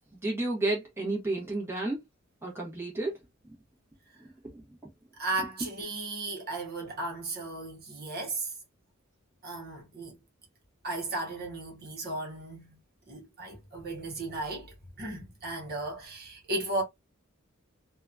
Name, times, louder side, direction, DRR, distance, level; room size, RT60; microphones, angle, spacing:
voice 1, 0.1-2.0 2.4-3.1 3.4-3.5 4.2-4.6 5.6-5.7, right 2 dB, 10° right, 1.0 m, -32 dB
voice 2, 5.2-8.5 9.4-10.1 10.8-12.8 13.1-16.8, right 2 dB, 50° right, 1.0 m, -35 dB
2.8 x 2.3 x 2.4 m
head